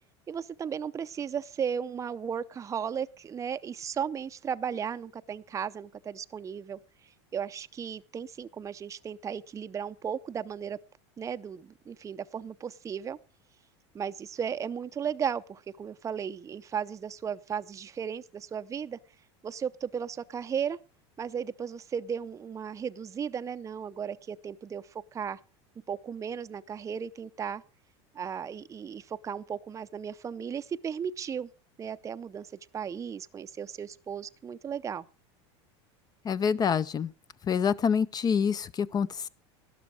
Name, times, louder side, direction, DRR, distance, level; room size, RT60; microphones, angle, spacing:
voice 1, 0.3-6.8 7.3-10.8 11.2-13.2 13.9-19.0 19.4-20.8 21.2-24.8 25.1-25.4 25.9-27.6 28.1-31.5 31.8-32.5 32.7-35.0, right 7 dB, 20° right, 0.6 m, -35 dB
voice 2, 36.2-37.1 37.5-39.3, left 7 dB, 25° left, 0.6 m, -26 dB
12.5 x 12.0 x 4.9 m
supercardioid pair, 115°, 14 cm